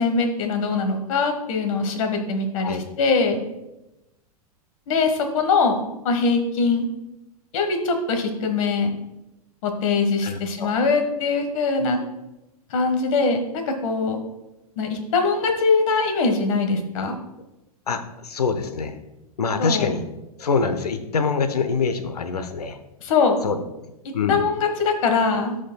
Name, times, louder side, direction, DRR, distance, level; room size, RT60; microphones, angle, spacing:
voice 1, 0.0-3.4 4.9-6.9 7.5-8.9 9.6-12.0 12.7-14.2 14.8-17.2 19.6-19.9 23.0-23.4 24.3-25.6, left 4 dB, 60° left, 5 dB, 1.5 m, -22 dB
voice 2, 10.2-10.7 17.9-19.0 19.4-20.0 20.4-22.8 23.4-23.6 24.1-24.4, left 5 dB, 85° left, 8 dB, 0.9 m, -25 dB
15.5 x 5.2 x 2.3 m, 0.95 s
hypercardioid pair, 105°, 19 cm